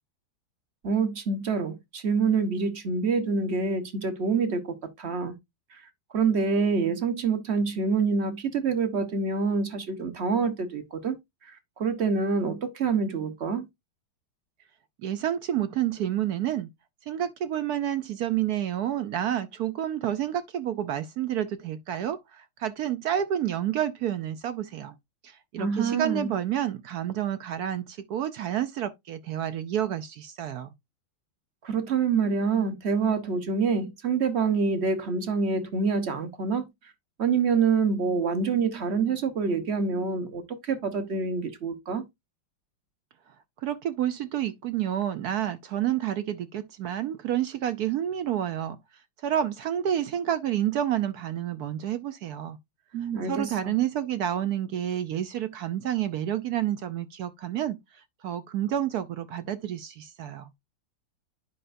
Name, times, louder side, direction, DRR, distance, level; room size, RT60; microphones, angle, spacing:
voice 1, 0.8-5.3 6.1-11.2 11.8-13.7 25.6-26.3 31.6-36.7 37.2-42.1 52.9-53.8, right 5 dB, 40° right, 1.1 m, -26 dB
voice 2, 15.0-16.7 17.1-24.9 25.2-30.7 43.6-48.8 49.2-52.6 53.2-60.5, right 11 dB, 70° right, 0.9 m, -29 dB
10.0 x 5.4 x 2.6 m
omnidirectional pair, 2.2 m